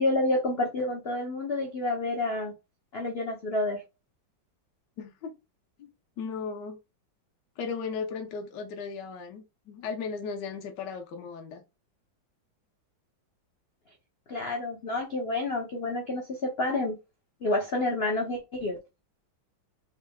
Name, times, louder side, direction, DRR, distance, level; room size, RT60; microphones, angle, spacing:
voice 1, 0.0-2.5 2.9-3.8 14.3-17.0 17.4-18.8, left 2 dB, 90° left, 0.5 m, -29 dB
voice 2, 5.0-5.3 5.8-5.9 6.2-6.8 7.6-11.6, left 5 dB, 65° left, 1.4 m, -36 dB
4.5 x 3.4 x 2.2 m
omnidirectional pair, 2.2 m